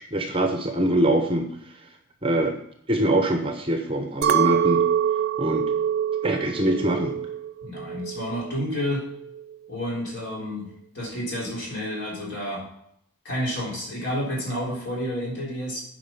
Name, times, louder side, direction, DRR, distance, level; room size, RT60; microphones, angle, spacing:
voice 1, 0.0-1.5 2.2-2.5 2.9-4.8 5.4-5.7 6.2-7.2, right 1 dB, 25° right, 4 dB, 0.8 m, -23 dB
Chink clink, 4.2-8.6 9.0-9.6, right 9 dB, 50° right, 0.4 m, -25 dB
voice 2, 7.6-9.0 9.7-10.7 10.9-12.6 13.2-15.8, equal, 55° left, -4 dB, 3.5 m, -30 dB
8.6 x 5.3 x 5.4 m, 0.73 s
head